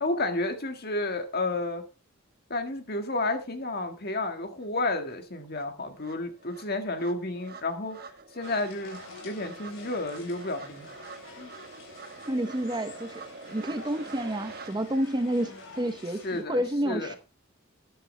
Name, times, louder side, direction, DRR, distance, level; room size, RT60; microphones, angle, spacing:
voice 1, 0.0-1.8 2.5-8.0 8.3-10.9 11.4-11.5 16.2-17.2, left 2 dB, 50° left, 1.8 m, -31 dB
sound 1, 4.6-4.7 5.1-14.7, right 4 dB, 45° right, 1.3 m, -46 dB
sound 2, 8.4-16.4, left 3 dB, 70° left, 3.7 m, -48 dB
voice 2, 12.3-13.2 13.5-17.2, right 1 dB, 20° right, 0.8 m, -29 dB
13.0 x 9.9 x 3.3 m
head